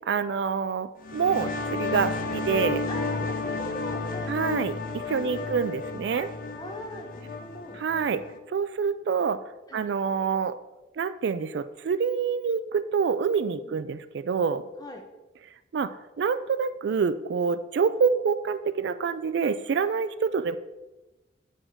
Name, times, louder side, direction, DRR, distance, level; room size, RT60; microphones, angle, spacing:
voice 1, 0.1-2.8 4.3-6.3 7.8-8.2 8.5-9.4 9.7-10.6 11.0-14.6 15.7-20.6, right 6 dB, 70° right, 12 dB, 0.3 m, -27 dB
sound 1, 1.0-8.4, left 3 dB, 45° left, 0.5 m, -32 dB
voice 2, 2.9-4.4 5.2-5.6 6.5-7.8 9.7-9.8 13.6-13.7 14.8-15.0, equal, 20° left, 2 dB, 0.9 m, -41 dB
9.0 x 5.0 x 3.7 m, 1.1 s
head